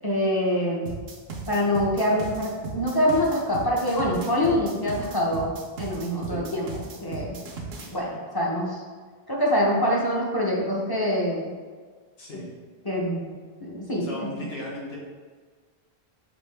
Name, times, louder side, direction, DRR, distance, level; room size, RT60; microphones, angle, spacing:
voice 1, 0.0-0.9 1.5-5.5 5.8-6.7 7.0-7.4 7.9-8.8 9.3-11.5 12.8-13.3 13.6-14.0, equal, 25° left, -4 dB, 0.8 m, -25 dB
sound 1, 0.9-7.9, right 4 dB, 75° right, 0.9 m, -37 dB
voice 2, 14.0-15.0, left 1 dB, 75° left, -4 dB, 1.3 m, -36 dB
5.3 x 2.9 x 3.4 m, 1.5 s
omnidirectional pair, 1.0 m